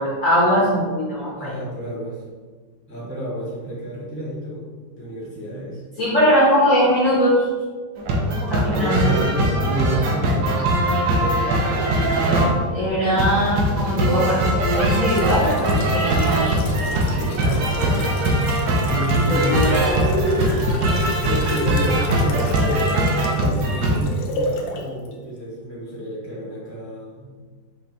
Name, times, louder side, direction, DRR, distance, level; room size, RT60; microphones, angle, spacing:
voice 1, 0.0-1.6 6.0-7.5 8.5-9.1 12.7-17.2 17.4-17.6 19.1-20.1 21.3-21.5, equal, 55° left, -7 dB, 1.1 m, -21 dB
voice 2, 1.3-2.2 2.9-4.6 4.9-5.8 8.5-10.5 11.0-11.4 12.3-13.1 17.2-18.2 18.8-19.7 21.5-23.0 23.3-27.3, equal, 10° left, -7 dB, 1.1 m, -31 dB
sound 1, 8.0-12.6 13.2-24.0, right 1 dB, 75° right, 1.3 m, -21 dB
sound 2, 14.5-24.8 25.1-25.2, left 1 dB, 85° left, 1.3 m, -29 dB
5.4 x 2.7 x 2.8 m, 1.4 s
omnidirectional pair, 2.0 m